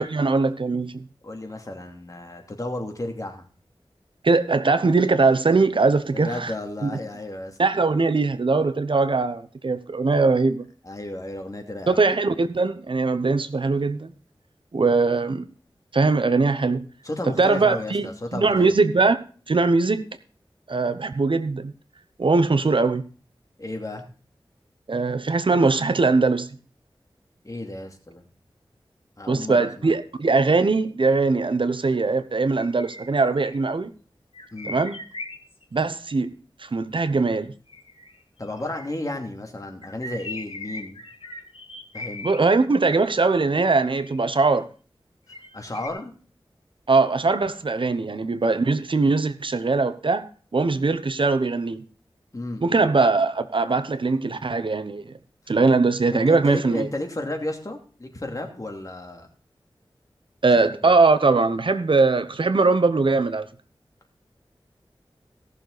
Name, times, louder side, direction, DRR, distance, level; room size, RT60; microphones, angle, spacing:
voice 1, 0.0-1.0 4.2-6.5 6.8-6.9 7.6-10.6 11.9-14.1 14.7-15.5 15.9-16.8 17.4-19.2 19.5-20.1 20.7-21.7 22.2-23.0 24.9-26.5 29.3-33.9 34.6-35.0 35.7-36.3 36.6-37.5 42.2-44.7 46.9-51.8 52.6-55.1 55.5-56.9 60.4-63.5, right 3 dB, 65° right, 0.9 m, -21 dB
voice 2, 1.2-3.5 6.1-7.6 10.8-12.1 17.0-18.7 23.6-24.0 27.4-28.2 29.2-29.9 34.5-34.8 38.4-41.0 41.9-42.3 45.5-46.1 52.3-52.9 56.1-59.3 60.8-61.0, left 1 dB, 35° left, 2.6 m, -33 dB
sound 1, 32.6-33.6 34.3-35.8 37.7-39.0 39.8-42.4 43.8-44.4 45.3-45.9, left 2 dB, 85° left, 1.9 m, -39 dB
17.5 x 6.7 x 4.0 m
wide cardioid pair, 65°, 9 cm